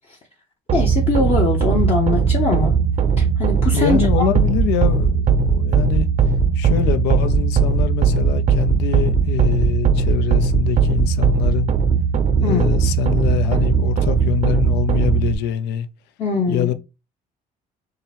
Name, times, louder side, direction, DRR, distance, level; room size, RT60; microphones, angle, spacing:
voice 1, 0.7-2.7 3.2-4.3 12.4-12.7 16.2-16.7, left 3 dB, 35° left, 0.8 m, -22 dB
sound 1, 0.7-15.3, right 6 dB, 45° right, 0.5 m, -18 dB
voice 2, 3.7-6.1 6.5-11.7 12.4-15.9 16.5-16.7, left 12 dB, 85° left, 0.4 m, -24 dB
3.8 x 2.0 x 4.0 m
cardioid pair, 110°, 17 cm